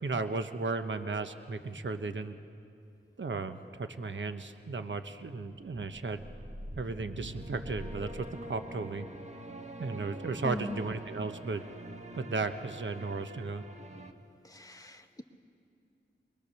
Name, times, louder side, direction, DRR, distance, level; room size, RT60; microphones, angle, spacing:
voice 1, 0.0-2.4 3.2-6.2 6.8-9.1 9.8-11.6 12.1-13.6, right 3 dB, 65° right, 9 dB, 1.0 m, -35 dB
sound 1, 5.4-14.1, right 1 dB, 35° right, 1.5 m, -45 dB
voice 2, 10.4-10.8 14.4-15.2, equal, 15° left, 4 dB, 1.5 m, -40 dB
22.5 x 21.0 x 6.8 m, 2.5 s
cardioid pair, 50°, 21 cm